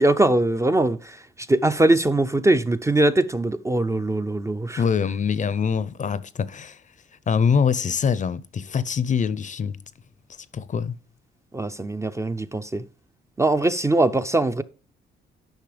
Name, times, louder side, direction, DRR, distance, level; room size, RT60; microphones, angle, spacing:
voice 1, 0.0-4.8 11.5-12.9 13.4-14.6, right 2 dB, 15° right, 0.4 m, -21 dB
voice 2, 4.8-6.8 7.3-9.8 10.5-10.9, left 6 dB, 40° left, 0.5 m, -24 dB
10.5 x 5.5 x 3.3 m
cardioid pair, 90°, 20 cm